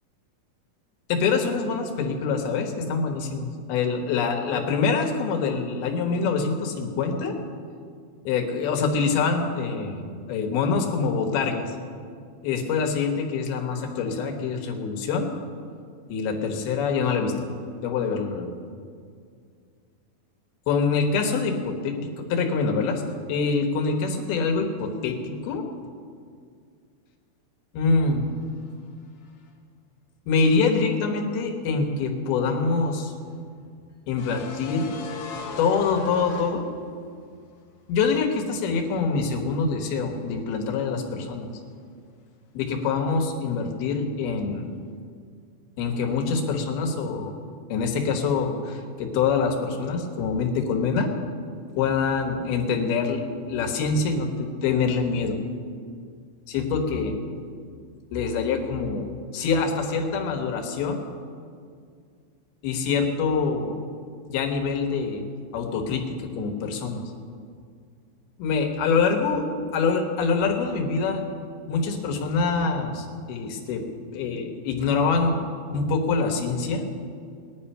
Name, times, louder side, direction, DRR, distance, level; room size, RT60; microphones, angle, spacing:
voice 1, 1.1-7.3 8.2-11.8 12.4-15.3 16.1-17.5 17.8-18.5 20.7-23.0 23.3-25.6 27.7-28.3 30.3-33.1 34.1-34.9 35.6-36.7 37.9-41.5 42.5-44.7 45.8-47.3 47.7-51.1 51.8-55.4 56.5-57.1 58.1-59.1 59.3-61.0 62.6-63.8 64.3-65.3 65.5-66.0 66.4-67.0 68.4-69.5 69.7-71.2 71.7-73.8 74.1-76.8, left 4 dB, 85° left, 3 dB, 3.3 m, -25 dB
sound 1, 32.8-37.2 37.5-37.6 39.8-40.2 40.5-40.6, left 4 dB, 60° left, 2.1 m, -39 dB
18.5 x 11.0 x 5.5 m, 2.2 s
omnidirectional pair, 4.3 m